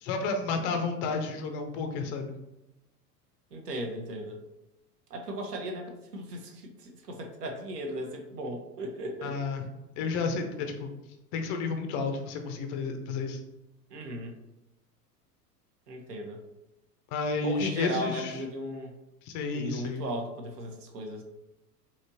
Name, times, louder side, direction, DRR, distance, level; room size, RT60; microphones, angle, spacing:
voice 1, 0.0-2.3 9.2-9.6 10.0-10.9 11.3-13.4 17.1-18.4 19.3-20.0, left 4 dB, 25° left, 6 dB, 0.4 m, -31 dB
voice 2, 3.5-4.4 5.1-9.4 13.9-14.4 15.9-16.4 17.4-18.9 19.5-21.2, right 1 dB, 75° right, 2 dB, 0.9 m, -36 dB
4.1 x 2.9 x 2.6 m, 0.96 s
figure-of-eight pair, 90°, 48 cm